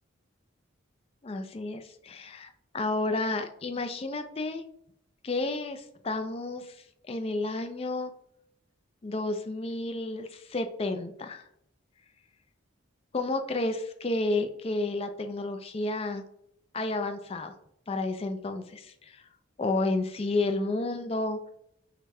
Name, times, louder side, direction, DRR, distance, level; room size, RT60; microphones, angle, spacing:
voice 1, 1.2-4.6 5.2-8.1 9.0-11.4 13.1-16.2 16.7-17.5 17.9-19.3 19.6-21.5, left 2 dB, 30° left, 7 dB, 0.4 m, -31 dB
5.7 x 2.1 x 3.4 m, 0.73 s
head